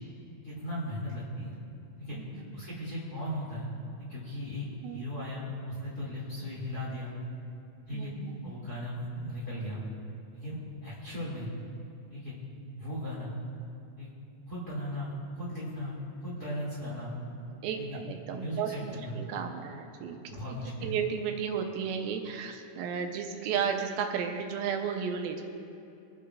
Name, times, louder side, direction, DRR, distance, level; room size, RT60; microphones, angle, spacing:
voice 1, 0.4-1.6 2.0-3.7 4.0-4.7 4.9-7.1 7.9-8.1 8.4-9.8 10.3-11.5 12.1-12.3 12.8-13.3 14.0-14.1 14.5-17.1 17.8-18.0 18.4-19.1 19.7-19.8 20.3-21.0, equal, 30° left, -8 dB, 2.4 m, -37 dB
voice 2, 2.1-2.5 4.8-5.0 7.9-8.5 17.6-20.2 20.8-25.4, right 7 dB, 85° right, 3 dB, 2.5 m, -33 dB
25.5 x 8.9 x 2.5 m, 2.7 s
omnidirectional pair, 4.3 m